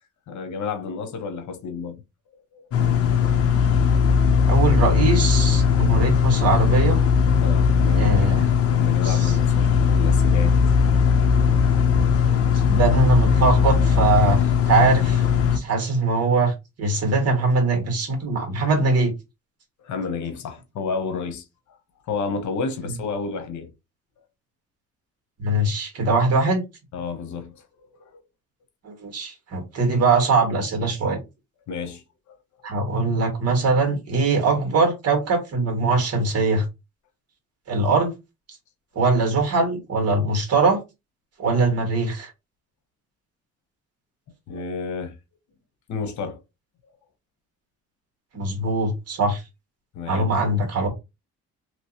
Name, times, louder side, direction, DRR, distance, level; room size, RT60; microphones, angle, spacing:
voice 1, 0.3-2.0 2.5-2.6 7.4-8.2 8.6-10.7 19.8-21.4 22.1-23.7 26.9-27.6 27.9-28.2 31.7-32.0 44.5-45.1 45.9-46.4 49.9-50.3, left 5 dB, 75° left, 0.9 m, -31 dB
sound 1, 2.7-15.6, left 6 dB, 50° left, 0.7 m, -19 dB
voice 2, 4.5-7.0 8.0-8.5 9.0-9.4 12.7-14.4 14.7-15.3 15.5-19.1 25.4-26.6 28.8-31.2 32.6-36.6 37.7-38.1 39.0-40.8 41.4-42.3 48.3-49.4 50.1-50.9, right 3 dB, 55° right, 1.8 m, -21 dB
3.0 x 3.0 x 2.8 m
cardioid pair, 110°, 30 cm